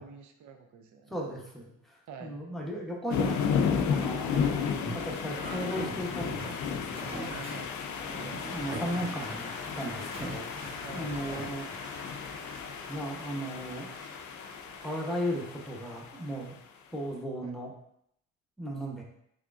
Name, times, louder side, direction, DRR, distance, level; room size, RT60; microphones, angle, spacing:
voice 1, 0.0-1.2 2.1-2.4 4.3-4.6 7.1-7.7 10.8-11.2 17.4-17.6, right 6 dB, 55° right, 6 dB, 0.6 m, -46 dB
voice 2, 1.1-4.4 4.9-7.4 8.1-9.5 9.7-11.9 12.9-13.9 14.8-16.5 16.9-17.7 18.6-19.0, equal, ahead, -2 dB, 0.9 m, -36 dB
sound 1, 3.1-16.5, left 6 dB, 55° left, 0.5 m, -34 dB
sound 2, 4.8-11.5, right 1 dB, 15° right, 1.1 m, -42 dB
Applause, 7.7-16.6, right 2 dB, 75° right, 1.0 m, -51 dB
3.5 x 3.4 x 2.5 m, 0.74 s
supercardioid pair, 70°, 36 cm